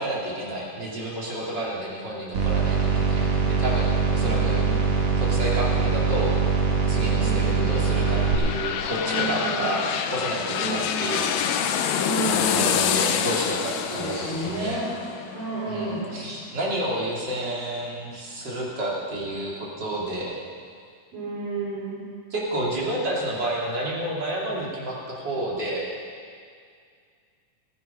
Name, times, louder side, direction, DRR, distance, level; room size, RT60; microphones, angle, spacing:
voice 1, 0.0-3.3 3.6-4.6 5.2-6.3 6.9-11.8 12.3-14.8 15.6-19.5 19.8-20.4 22.3-25.8, right 1 dB, 35° right, -5 dB, 2.8 m, -30 dB
sound 1, 2.3-8.4, right 5 dB, 55° right, 2.8 m, -22 dB
voice 2, 4.1-4.9 7.0-7.6 8.7-9.8 10.4-10.9 11.9-12.8 13.8-14.9 15.3-16.2 21.1-22.0, right 3 dB, 75° right, -9 dB, 6.4 m, -32 dB
sound 2, 7.3-16.9 17.3-17.4, left 8 dB, 80° left, 1.7 m, -27 dB
18.0 x 9.4 x 5.6 m, 2.2 s
omnidirectional pair, 4.0 m